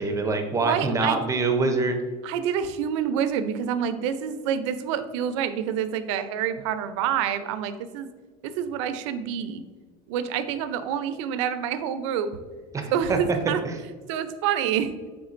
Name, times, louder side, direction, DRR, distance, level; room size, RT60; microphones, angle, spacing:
voice 1, 0.0-2.0 12.7-12.9 13.6-13.8, right 3 dB, 20° right, 5 dB, 0.6 m, -25 dB
voice 2, 0.6-1.2 2.2-8.1 8.4-9.6 10.1-12.4 12.9-13.6 14.1-14.9, right 8 dB, 90° right, 11 dB, 0.4 m, -27 dB
5.1 x 3.6 x 2.5 m, 1.4 s
supercardioid pair, 115°, 15 cm